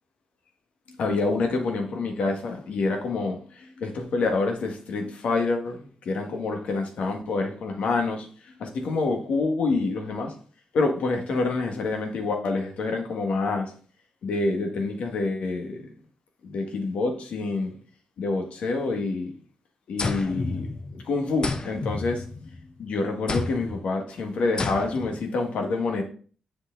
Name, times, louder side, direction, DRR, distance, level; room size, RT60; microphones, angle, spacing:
voice 1, 1.0-10.3 10.7-13.7 14.2-15.9 16.4-17.7 18.2-19.3 19.9-20.7 21.0-22.2 22.8-26.0, left 3 dB, 70° left, 1.6 m, -27 dB
sound 1, 20.0-21.0 21.4-22.7 23.3-23.8 24.6-25.2, left 3 dB, 40° left, 0.9 m, -31 dB
7.5 x 4.7 x 3.8 m
supercardioid pair, 60°, 2 cm